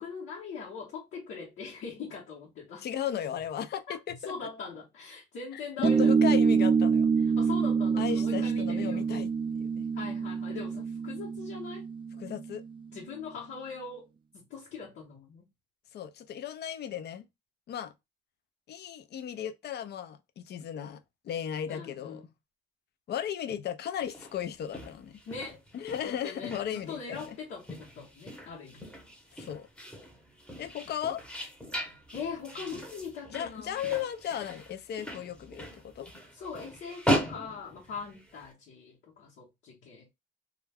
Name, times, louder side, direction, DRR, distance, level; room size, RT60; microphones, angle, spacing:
voice 1, 0.0-2.8 3.9-4.0 4.2-6.1 7.2-9.0 9.9-11.9 12.9-15.5 21.7-22.3 25.3-25.6 26.0-28.9 30.9-31.0 32.1-33.8 36.3-40.1, left 5 dB, 75° left, 0.9 m, -41 dB
voice 2, 2.8-4.3 5.8-7.1 8.0-9.3 9.5-9.8 12.2-12.6 15.9-17.3 17.7-17.9 18.7-22.3 23.1-25.2 25.7-27.4 29.3-29.7 30.6-31.2 33.3-36.1, left 9 dB, 55° left, 0.4 m, -36 dB
sound 1, 5.8-12.8, right 5 dB, 25° right, 0.4 m, -26 dB
sound 2, 24.0-38.5, equal, 5° left, 0.8 m, -38 dB
2.3 x 2.2 x 3.3 m
cardioid pair, 90°, 20 cm